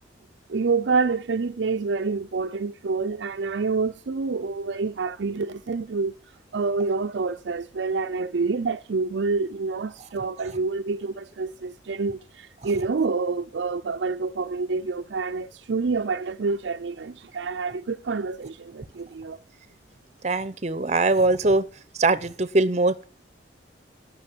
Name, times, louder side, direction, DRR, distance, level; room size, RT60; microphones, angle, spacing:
voice 1, 0.5-6.1 6.5-19.4, right 4 dB, 70° right, 0.5 m, -27 dB
voice 2, 20.2-21.6 22.0-23.0, right 2 dB, 35° right, 0.7 m, -21 dB
11.0 x 6.3 x 8.8 m
head